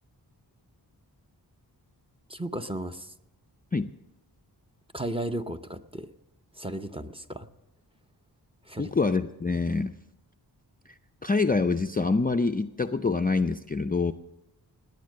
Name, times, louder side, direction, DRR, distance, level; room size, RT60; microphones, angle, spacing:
voice 1, 2.3-3.1 4.9-6.1 6.6-7.5 8.7-8.9, right 1 dB, 15° right, 8 dB, 0.7 m, -34 dB
voice 2, 8.8-10.0 11.2-14.1, left 4 dB, 20° left, 7 dB, 0.4 m, -25 dB
18.5 x 9.6 x 6.5 m, 0.95 s
wide cardioid pair, 90°, 41 cm